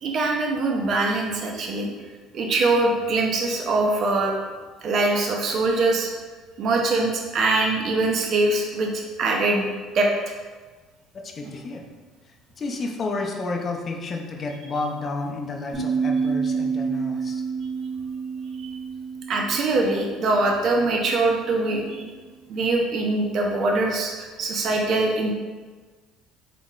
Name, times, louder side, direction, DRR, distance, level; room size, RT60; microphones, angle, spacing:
voice 1, 0.0-1.9 2.3-4.3 4.8-6.1 6.6-9.7 9.9-10.1 19.3-22.1 22.5-25.3, right 2 dB, 50° right, 0 dB, 0.6 m, -23 dB
voice 2, 11.2-11.8 12.6-17.4, left 3 dB, 35° left, 2 dB, 0.6 m, -31 dB
sound 1, 15.7-20.9, right 5 dB, 25° right, 1.4 m, -29 dB
4.1 x 3.6 x 2.4 m, 1.4 s
cardioid pair, 105°, 0 cm